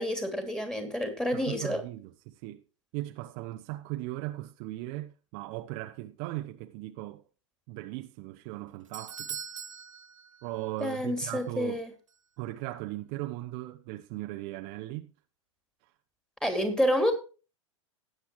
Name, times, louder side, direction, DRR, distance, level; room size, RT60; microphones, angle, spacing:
voice 1, 0.0-1.8 10.8-11.9 16.4-17.1, equal, 5° left, 2.9 m, -28 dB
voice 2, 1.3-2.6 2.9-7.2 7.7-9.4 10.4-11.8 12.4-15.1, right 17 dB, 45° right, 0.9 m, -38 dB
Doorbell, 8.5-11.0 11.2-11.3 12.1-12.2, right 7 dB, 75° right, 1.0 m, -42 dB
19.0 x 7.9 x 3.1 m
figure-of-eight pair, 100°, 16 cm